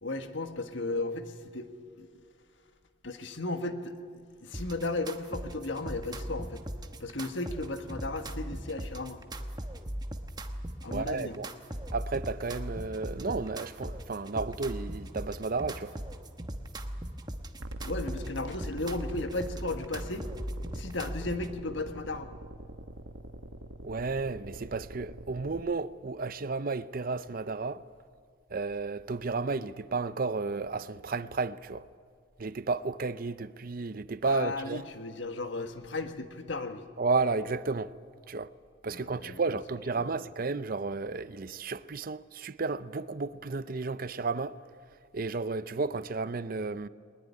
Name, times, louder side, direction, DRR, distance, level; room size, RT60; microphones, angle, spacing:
voice 1, 0.0-1.7 2.0-2.2 3.0-6.6 7.0-9.2 10.8-11.4 17.8-20.3 20.7-22.3 34.2-36.8 38.9-39.6 39.9-40.1, left 2 dB, 70° left, 1.6 m, -35 dB
sound 1, 4.5-21.5, right 1 dB, 20° right, 1.2 m, -39 dB
voice 2, 10.9-11.5 11.9-15.9 23.8-27.8 28.5-31.8 32.4-34.8 37.0-37.9 38.3-38.5 38.8-44.6 45.1-46.9, right 3 dB, 50° right, 0.6 m, -32 dB
sound 2, 17.6-25.6, right 1 dB, 90° right, 1.2 m, -44 dB
20.5 x 20.5 x 9.8 m
head